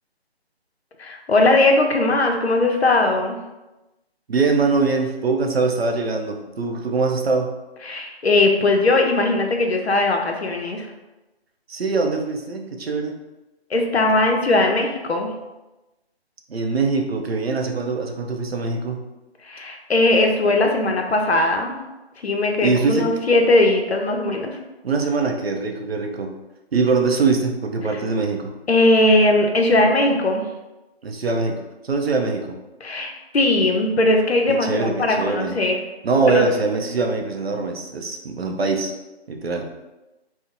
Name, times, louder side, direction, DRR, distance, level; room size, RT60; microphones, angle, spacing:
voice 1, 1.0-3.4 7.8-10.9 13.7-15.3 19.4-21.8 22.2-24.6 28.7-30.4 32.8-35.8 36.2-36.5, left 2 dB, 75° left, 3 dB, 0.6 m, -19 dB
voice 2, 4.3-7.5 11.7-13.2 16.5-19.0 22.6-23.1 24.8-26.3 26.7-28.5 31.0-32.6 34.6-35.5 36.0-38.9 39.3-39.7, right 4 dB, 70° right, 3 dB, 0.5 m, -22 dB
2.8 x 2.0 x 2.5 m, 1.0 s
figure-of-eight pair, 160°, 32 cm